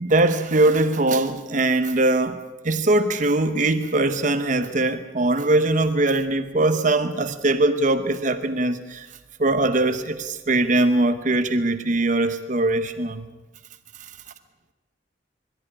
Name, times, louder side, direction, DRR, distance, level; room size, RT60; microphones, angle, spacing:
voice 1, 0.0-9.1 9.4-13.3, right 2 dB, 45° right, 1.0 m, -21 dB
22.5 x 13.5 x 9.9 m
head